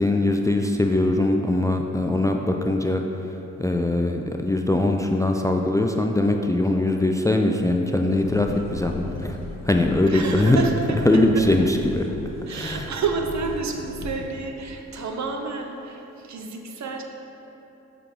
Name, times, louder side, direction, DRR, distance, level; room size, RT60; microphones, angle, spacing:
voice 1, 0.0-3.0 3.6-9.4 9.6-10.6 11.1-12.1 12.5-12.9, left 1 dB, 10° left, 3 dB, 0.4 m, -21 dB
sound 1, 8.1-14.5, left 2 dB, 55° left, 0.8 m, -37 dB
voice 2, 10.1-11.0 11.3-11.4 12.5-17.0, right 4 dB, 55° right, 3 dB, 0.8 m, -29 dB
6.6 x 4.8 x 3.8 m, 3.0 s
supercardioid pair, 55°, 33 cm